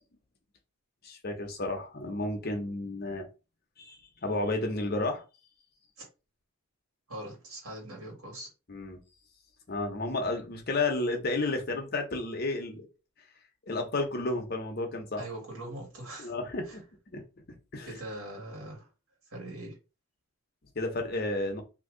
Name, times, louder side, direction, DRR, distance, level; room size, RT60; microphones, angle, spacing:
voice 1, 1.0-3.3 3.8-5.2 8.7-9.0 9.7-12.9 13.7-15.3 16.2-17.2 17.7-17.9 20.7-21.6, left 2 dB, 45° left, 0.8 m, -32 dB
voice 2, 7.1-8.5 15.2-16.3 16.7-16.8 17.9-18.9 19.3-19.7, right 1 dB, 80° right, 1.8 m, -41 dB
2.8 x 2.7 x 3.8 m
head